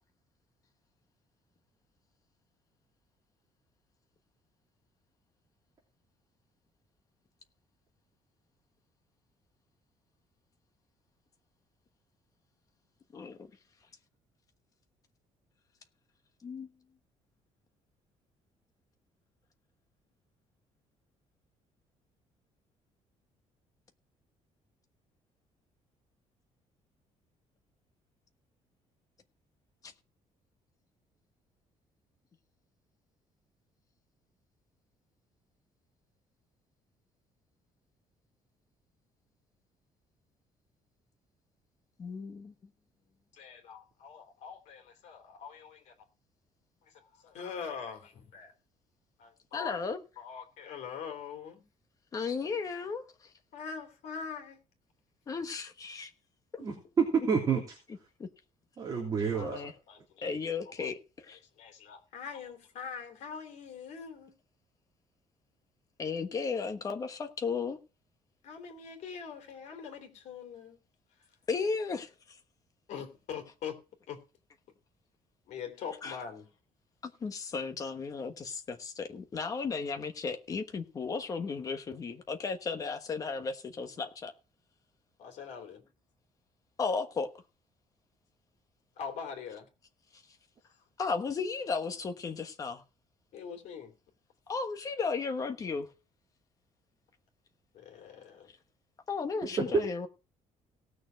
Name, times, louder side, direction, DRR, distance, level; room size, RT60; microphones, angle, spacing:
voice 1, 13.1-13.5 16.4-16.7 29.8-29.9 42.0-42.5 49.5-50.0 52.1-53.3 55.3-56.1 56.5-56.6 57.5-57.6 58.2-58.3 59.3-59.7 60.2-61.4 66.0-67.8 71.5-72.4 76.0-76.2 77.0-84.3 86.8-87.3 90.1-90.2 91.0-92.8 94.5-95.9 99.1-100.1, left 5 dB, 25° left, 1.2 m, -35 dB
voice 2, 43.3-45.9 46.9-48.5 49.2-49.7 50.2-51.6 53.5-54.6 59.2-59.3 59.9-60.4 60.8-60.9 61.3-64.3 68.4-70.8 72.9-73.8 74.1-74.2 75.5-76.5 85.2-85.8 89.0-89.7 90.6-90.8 93.3-93.9 97.7-98.5, left 6 dB, 65° left, 3.1 m, -43 dB
voice 3, 56.6-57.6 58.8-59.6 99.6-99.7, right 6 dB, 30° right, 3.2 m, -28 dB
18.0 x 6.6 x 4.5 m
cardioid pair, 180°, 13 cm